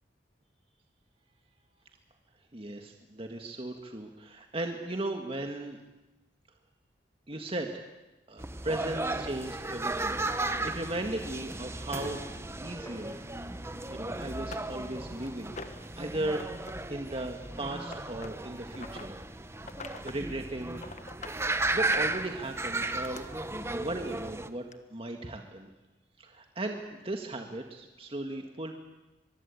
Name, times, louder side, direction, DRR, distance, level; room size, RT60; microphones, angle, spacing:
voice 1, 2.5-5.8 7.3-7.8 8.3-12.2 12.6-13.2 13.9-16.4 16.9-19.2 20.0-21.0 21.7-24.7 24.9-25.7 26.2-28.7, right 1 dB, 30° right, 4 dB, 1.9 m, -37 dB
sound 1, 8.4-24.5, right 2 dB, 15° right, 1.1 m, -35 dB
sound 2, 11.7-16.8, left 1 dB, 20° left, 4.1 m, -51 dB
sound 3, 13.8-13.9 14.4-15.9 16.3-16.7 17.0-19.1 19.6-20.2 20.5-21.4 21.8-23.2 24.2-24.3 24.7-24.8, left 4 dB, 40° left, 1.6 m, -46 dB
23.5 x 23.5 x 8.6 m, 1.0 s
head